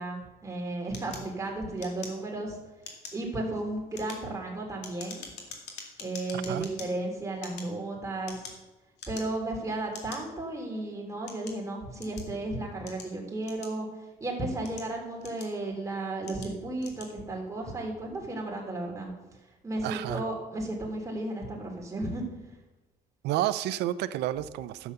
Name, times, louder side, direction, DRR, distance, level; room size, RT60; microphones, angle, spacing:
voice 1, 0.0-2.6 3.1-5.2 6.0-8.4 9.1-13.9 14.2-19.1 19.6-22.2, right 2 dB, 20° right, -1 dB, 3.3 m, -34 dB
sound 1, 0.9-2.5 2.8-3.3 3.8-6.9 7.3-8.7 9.0-9.5 9.9-10.2 10.9-12.3 12.9-14.0 14.5-15.7 16.2-16.5 16.8-17.1, left 6 dB, 80° left, 2.4 m, -44 dB
voice 2, 6.3-6.7 19.8-20.2 23.2-24.9, right 13 dB, 80° right, 15 dB, 0.6 m, -30 dB
12.0 x 7.2 x 6.7 m, 1.1 s
cardioid pair, 110°, 17 cm